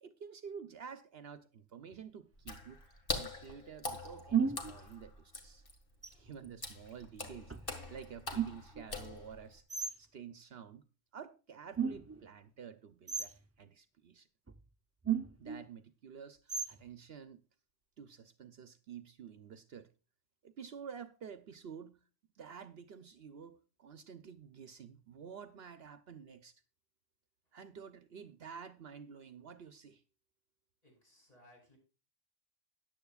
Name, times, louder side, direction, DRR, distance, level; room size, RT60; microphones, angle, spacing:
voice 1, 0.0-5.6 6.1-7.5 7.9-9.6 10.0-10.9 11.1-14.3 15.4-17.4 18.0-19.9 20.4-22.0 22.3-26.6 27.5-30.0, right 7 dB, 60° right, 0.9 m, -50 dB
sound 1, 1.9-2.0 4.3-4.8 6.0-6.6 7.5-7.7 8.3-8.9 9.7-10.0 11.7-12.3 13.1-13.4 14.5-14.6 15.0-15.7 16.5-16.9, right 7 dB, 20° right, 0.4 m, -35 dB
Water / Splash splatter, 2.4-9.6, left 3 dB, 50° left, 2.1 m, -44 dB
voice 2, 30.8-31.8, left 1 dB, 35° left, 5.7 m, -63 dB
14.0 x 10.0 x 2.3 m
omnidirectional pair, 1.2 m